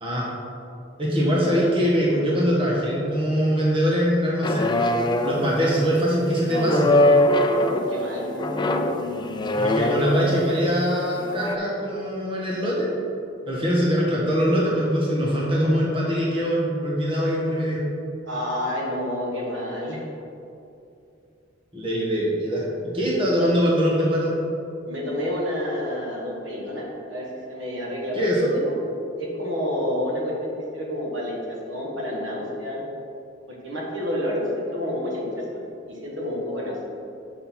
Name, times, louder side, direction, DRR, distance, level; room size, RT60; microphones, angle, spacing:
voice 1, 0.0-0.3 1.0-4.7 5.2-6.9 9.6-12.9 13.5-17.8 21.7-24.4 28.1-28.5, equal, 30° right, -5 dB, 1.3 m, -22 dB
sound 1, 4.4-5.6 6.5-7.9 8.4-10.4 11.2-11.6, left 1 dB, 25° left, 0.3 m, -22 dB
voice 2, 7.5-9.3 18.3-20.1 24.8-28.7 29.2-32.8 33.5-36.8, left 1 dB, 80° right, -3 dB, 1.5 m, -29 dB
6.6 x 5.9 x 4.2 m, 2.7 s
head